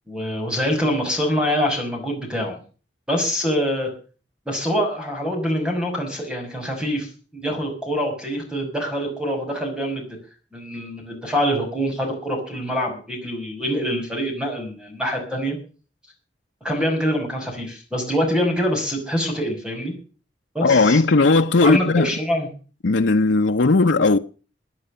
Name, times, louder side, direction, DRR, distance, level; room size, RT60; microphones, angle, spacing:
voice 1, 0.1-2.6 3.1-3.9 4.5-10.1 10.5-15.6 16.6-19.9 20.5-21.0 21.6-22.5, equal, 5° right, 6.0 m, -25 dB
voice 2, 20.6-22.1 22.8-24.2, left 3 dB, 85° left, 0.8 m, -17 dB
17.5 x 9.8 x 6.7 m
head